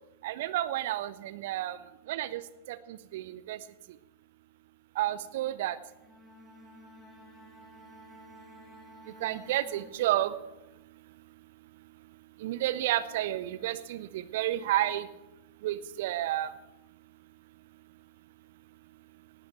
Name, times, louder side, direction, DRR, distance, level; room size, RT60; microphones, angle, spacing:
voice 1, 0.2-1.8 2.1-2.4 2.7-3.6 5.0-5.8 9.2-10.3 12.4-15.1 15.6-16.5, right 14 dB, 55° right, 16 dB, 0.8 m, -31 dB
Bowed string instrument, 5.9-10.6, left 1 dB, 5° left, 2.9 m, -54 dB
18.0 x 12.0 x 4.6 m, 0.97 s
figure-of-eight pair, 90°, 0 cm